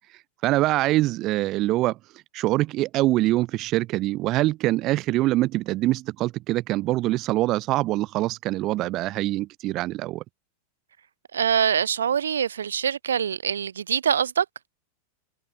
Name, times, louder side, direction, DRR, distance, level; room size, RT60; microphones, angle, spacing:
voice 1, 0.4-2.0 2.3-10.2, right 17 dB, 35° right, 6.1 m, -24 dB
voice 2, 11.3-14.4, right 8 dB, 65° right, 2.4 m, -24 dB
figure-of-eight pair, 90°, 0 cm